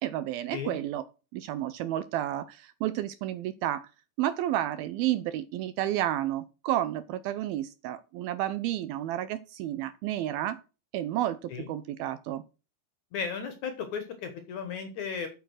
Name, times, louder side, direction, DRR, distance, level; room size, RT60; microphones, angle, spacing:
voice 1, 0.0-1.1 1.3-3.9 4.2-10.6 10.9-12.4, right 13 dB, 80° right, 13 dB, 2.3 m, -31 dB
voice 2, 13.1-15.3, left 6 dB, 60° left, 8 dB, 2.1 m, -35 dB
8.7 x 7.1 x 6.3 m, 0.31 s
omnidirectional pair, 4.8 m